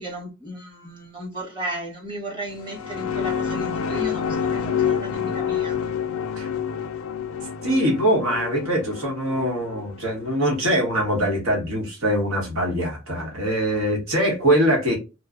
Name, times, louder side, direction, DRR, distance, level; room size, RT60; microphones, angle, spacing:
voice 1, 0.0-5.8, right 2 dB, 25° right, 1.1 m, -35 dB
sound 1, 2.5-11.2, left 7 dB, 75° left, 0.4 m, -28 dB
voice 2, 7.6-15.0, equal, 75° right, 1.1 m, -23 dB
3.0 x 2.0 x 2.4 m
head